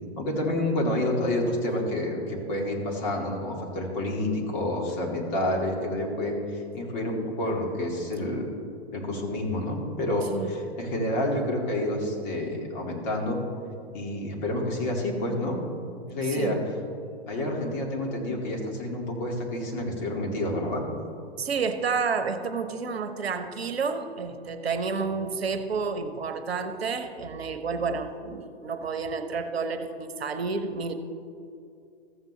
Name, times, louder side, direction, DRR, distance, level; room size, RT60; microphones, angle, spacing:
voice 1, 0.2-8.5 8.9-13.4 13.9-15.6 16.1-16.6 17.3-20.8, left 1 dB, 45° left, -1 dB, 2.2 m, -29 dB
voice 2, 16.2-16.6 21.4-30.9, right 5 dB, 75° right, 9 dB, 0.9 m, -30 dB
14.5 x 7.5 x 3.2 m, 2.5 s
figure-of-eight pair, 105°, 31 cm